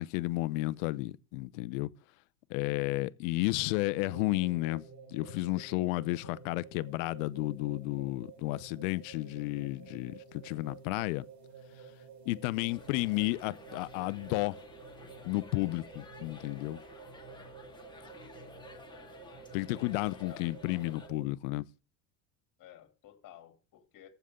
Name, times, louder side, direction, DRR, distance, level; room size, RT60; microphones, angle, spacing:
voice 1, 0.0-1.9 2.5-4.8 5.1-11.3 12.3-14.6 15.2-16.8 19.5-21.7, left 21 dB, 70° left, 0.7 m, -32 dB
sound 1, 3.7-21.3, right 6 dB, 40° right, 3.9 m, -51 dB
sound 2, 12.7-21.1, left 4 dB, 10° left, 2.2 m, -53 dB
voice 2, 17.1-17.6 20.2-20.5 22.6-24.1, left 12 dB, 50° left, 3.0 m, -54 dB
14.5 x 6.9 x 3.7 m
supercardioid pair, 105°, 42 cm